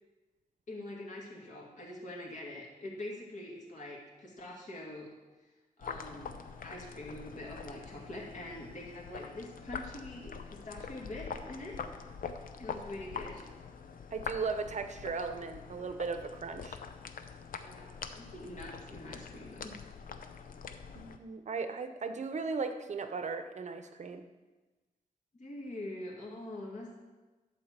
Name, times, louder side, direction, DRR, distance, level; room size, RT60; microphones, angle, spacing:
voice 1, 0.7-5.1 5.8-11.8 12.6-13.5 17.6-19.8 25.3-27.0, left 1 dB, 55° left, -2 dB, 2.3 m, -44 dB
squishing sounds, 5.8-21.2, left 6 dB, 70° left, 0.7 m, -44 dB
voice 2, 14.1-16.8 20.9-24.3, right 4 dB, 50° right, 8 dB, 0.8 m, -37 dB
11.0 x 4.6 x 7.4 m, 1.2 s
wide cardioid pair, 150°, 15 cm